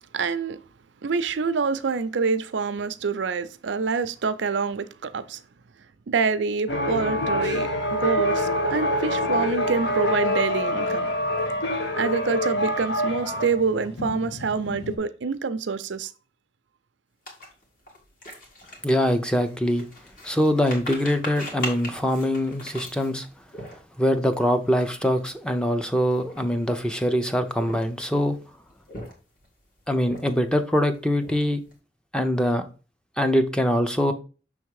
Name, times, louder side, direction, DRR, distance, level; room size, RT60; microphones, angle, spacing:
voice 1, 0.1-0.6 1.0-5.4 6.1-11.1 12.0-16.1, right 5 dB, 80° right, 0.5 m, -26 dB
sound 1, 6.7-15.0, left 1 dB, 70° left, 1.2 m, -26 dB
sound 2, 17.2-24.1 24.7-24.9 25.1-25.3 26.0-26.8 27.4-28.2 28.7-29.5 30.0-30.6 30.9-31.7, left 1 dB, 50° left, 2.0 m, -39 dB
voice 2, 18.8-19.8 20.2-23.3 24.0-28.4 29.9-31.6 32.1-32.6 33.2-34.1, equal, 5° left, 0.5 m, -23 dB
6.4 x 3.5 x 4.7 m
head